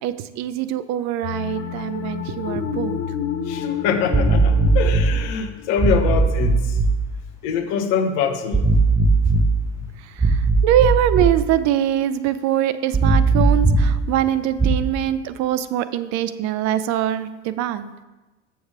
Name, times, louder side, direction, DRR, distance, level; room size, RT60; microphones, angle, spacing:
voice 1, 0.0-3.0 10.0-17.9, right 11 dB, 50° right, 13 dB, 0.6 m, -23 dB
sound 1, 1.2-6.5, left 8 dB, 40° left, 0.8 m, -30 dB
voice 2, 3.4-6.8 7.4-8.7 9.8-9.9, left 7 dB, 60° left, 8 dB, 1.1 m, -24 dB
sound 2, 4.1-5.1 5.8-6.9 8.5-9.5 10.2-11.3 12.9-13.9 14.6-14.7, right 3 dB, 10° right, 1.2 m, -17 dB
7.1 x 7.1 x 4.8 m, 1.1 s
hypercardioid pair, 70°, 34 cm